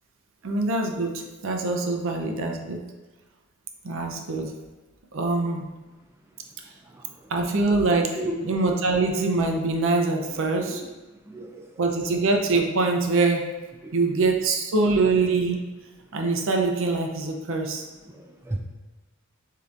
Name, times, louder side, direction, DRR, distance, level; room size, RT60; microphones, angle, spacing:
voice 1, 0.4-2.8 3.8-4.5 5.1-5.7 7.3-8.1 8.4-10.8 11.8-13.4 13.9-15.6 16.1-17.9, right 3 dB, 65° right, 2 dB, 0.6 m, -24 dB
voice 2, 11.3-11.7 13.8-14.2 18.1-18.6, right 1 dB, 10° right, 0 dB, 0.3 m, -35 dB
6.6 x 2.8 x 2.5 m, 1.2 s
head